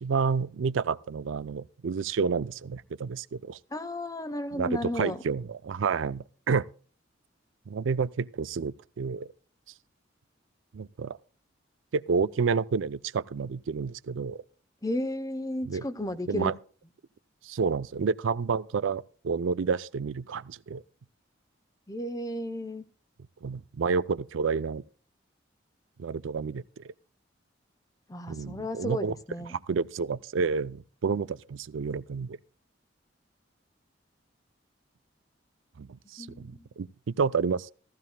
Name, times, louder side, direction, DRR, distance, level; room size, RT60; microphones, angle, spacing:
voice 1, 0.0-3.6 4.5-6.7 7.7-9.3 10.7-11.2 11.9-14.4 15.7-15.9 16.3-16.5 17.4-20.8 23.4-24.8 26.0-26.9 28.3-29.1 29.4-32.4 35.8-37.7, right 5 dB, 85° right, 0.4 m, -30 dB
voice 2, 3.7-5.2 14.8-16.5 21.9-22.8 28.1-29.5 36.2-36.7, left 1 dB, 20° left, 0.7 m, -33 dB
15.0 x 14.5 x 2.2 m
head